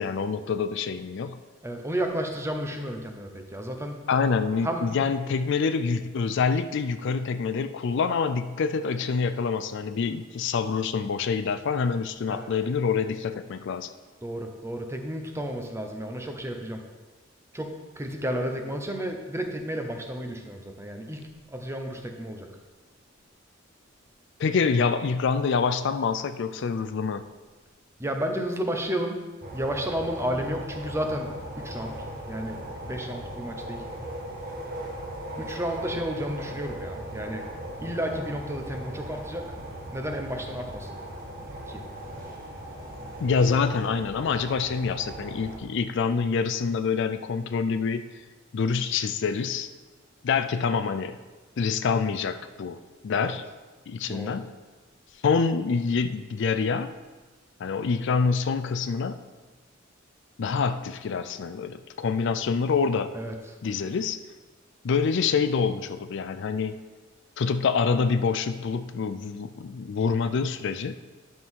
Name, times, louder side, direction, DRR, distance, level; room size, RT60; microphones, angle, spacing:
voice 1, 0.0-1.4 4.1-13.9 24.4-27.3 43.2-48.0 48.5-49.7 50.2-51.2 51.6-53.4 53.9-54.5 55.2-56.9 57.6-59.2 60.4-63.2 63.6-64.2 64.8-66.8 67.4-71.0, left 5 dB, 65° left, 11 dB, 0.4 m, -26 dB
voice 2, 1.6-4.0 4.6-4.9 12.3-12.5 14.2-16.8 17.5-21.2 21.5-22.5 28.0-29.2 29.5-31.3 31.6-32.0 32.3-32.6 32.9-33.8 35.4-37.5 37.8-39.5 39.9-40.9 41.7-41.8 53.1-53.3 54.1-54.4 63.1-63.3, equal, 15° right, 4 dB, 0.8 m, -32 dB
sound 1, 29.4-45.6, right 1 dB, 45° right, 1.4 m, -38 dB
10.0 x 6.1 x 3.7 m, 1.3 s
head